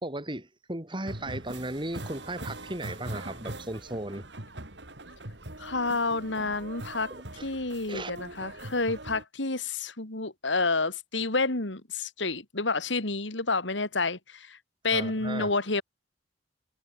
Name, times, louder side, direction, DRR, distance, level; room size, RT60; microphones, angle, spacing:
voice 1, 0.0-4.3 7.1-7.5 7.9-8.1 14.9-15.5, right 1 dB, 25° right, 3.0 m, -36 dB
sound 1, 1.0-9.2, right 1 dB, 65° right, 4.9 m, -42 dB
voice 2, 5.6-7.1 7.4-14.6 14.8-15.8, left 3 dB, 80° left, 3.0 m, -29 dB
head